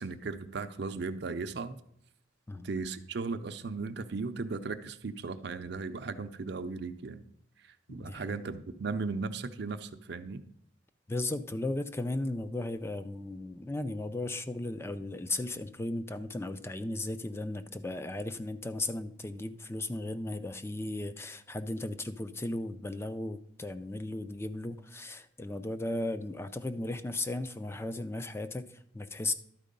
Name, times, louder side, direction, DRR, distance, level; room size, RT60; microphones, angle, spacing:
voice 1, 0.0-1.8 2.6-7.2 7.6-10.4, right 4 dB, 60° right, 9 dB, 0.5 m, -36 dB
voice 2, 7.9-8.4 11.1-29.3, left 2 dB, 15° left, 11 dB, 0.4 m, -36 dB
12.0 x 4.6 x 5.2 m, 0.72 s
head